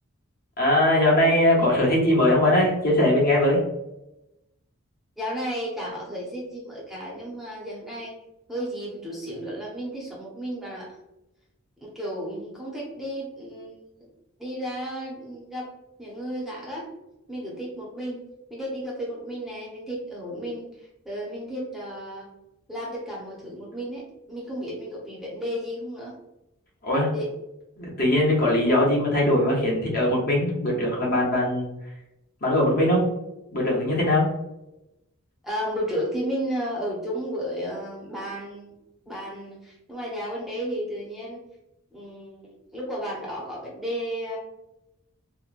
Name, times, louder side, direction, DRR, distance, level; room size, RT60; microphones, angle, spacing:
voice 1, 0.6-3.6 26.8-27.1 27.8-31.7 32.4-33.0 33.5-34.3, left 1 dB, 40° left, -3 dB, 0.7 m, -21 dB
voice 2, 5.2-8.1 8.5-11.0 11.8-13.8 14.4-15.7 16.0-16.9 17.3-18.2 18.5-22.3 22.7-26.2 27.1-27.3 35.4-38.7 39.1-41.4 41.9-44.4, equal, ahead, -5 dB, 0.6 m, -33 dB
2.8 x 2.2 x 2.4 m, 0.91 s
head